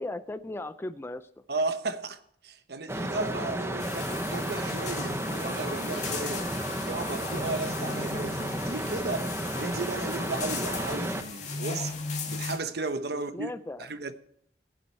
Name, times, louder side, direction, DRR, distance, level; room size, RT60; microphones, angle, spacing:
voice 1, 0.0-1.3 13.1-13.9, left 2 dB, 15° left, 0.4 m, -37 dB
voice 2, 1.5-6.5 6.8-13.5 13.8-14.1, right 3 dB, 65° right, 0.9 m, -34 dB
sound 1, 2.9-11.2, right 1 dB, 15° right, 0.9 m, -33 dB
sound 2, 3.8-12.6, left 4 dB, 45° left, 2.5 m, -37 dB
16.0 x 7.5 x 4.3 m
head